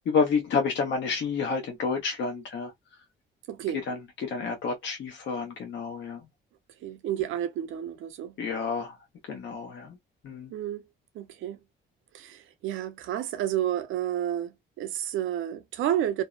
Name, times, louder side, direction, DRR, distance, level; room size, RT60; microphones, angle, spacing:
voice 1, 0.1-2.7 3.9-6.2 8.4-8.9 9.3-9.9 10.2-10.5, left 5 dB, 65° left, 0.9 m, -29 dB
voice 2, 3.5-3.8 6.8-8.4 10.5-10.8 11.1-11.6 12.1-16.2, right 11 dB, 85° right, 0.6 m, -30 dB
2.6 x 2.0 x 2.3 m
cardioid pair, 90°, 20 cm